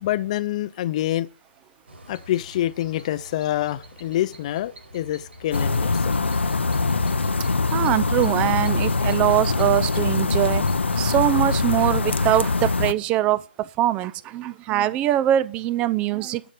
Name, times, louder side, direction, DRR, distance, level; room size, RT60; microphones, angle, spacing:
voice 1, 0.0-1.3 2.1-6.1, left 13 dB, 35° left, 0.6 m, -26 dB
little grigs, 1.9-11.3, equal, 75° right, 4.3 m, -47 dB
sound 1, 5.5-12.9, left 3 dB, 85° left, 0.7 m, -23 dB
voice 2, 7.7-10.6 11.0-16.4, right 13 dB, 20° right, 0.5 m, -22 dB
11.5 x 6.0 x 6.5 m
figure-of-eight pair, 140°, 6 cm